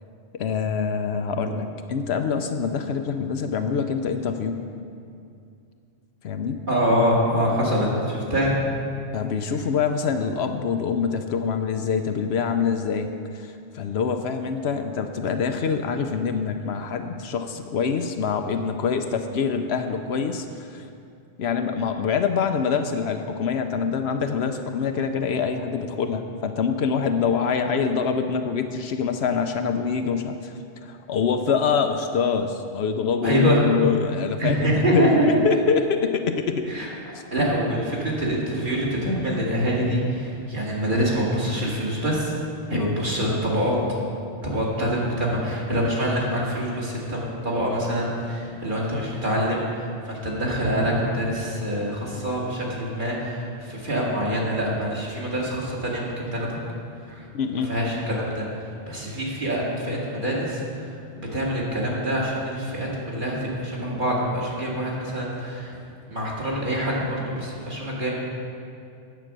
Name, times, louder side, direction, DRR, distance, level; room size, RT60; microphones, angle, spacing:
voice 1, 0.3-4.6 6.2-6.6 9.1-20.9 21.4-36.7 42.7-43.0 57.3-57.7, left 6 dB, 70° left, 7 dB, 0.8 m, -25 dB
voice 2, 6.7-8.7 33.2-33.6 34.4-35.4 36.6-36.9 37.3-42.4 42.7-43.8 44.4-56.6 57.1-57.3 57.5-65.7 66.1-68.1, equal, 45° right, -5 dB, 2.1 m, -25 dB
9.2 x 7.8 x 6.1 m, 2.4 s
omnidirectional pair, 1.2 m